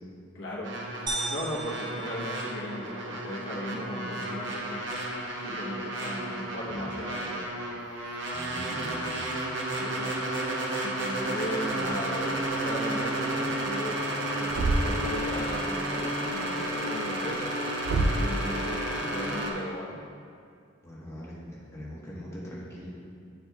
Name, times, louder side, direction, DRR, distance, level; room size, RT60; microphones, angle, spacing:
voice 1, 0.3-0.8 1.3-4.8 5.3-7.5 9.8-10.2 10.8-13.9 14.4-14.5 14.8-17.5 18.2-20.0, left 1 dB, 70° left, -5 dB, 1.0 m, -37 dB
sound 1, 0.6-19.5, right 1 dB, 65° right, 0.8 m, -32 dB
sound 2, 1.1-3.0, right 2 dB, 20° right, 0.5 m, -36 dB
voice 2, 8.3-9.2 20.8-22.9, equal, 15° left, -5 dB, 1.1 m, -42 dB
Thump thud, 14.5-15.1 17.8-18.4, right 2 dB, 85° right, 0.4 m, -26 dB
10.5 x 4.4 x 2.3 m, 2.3 s
head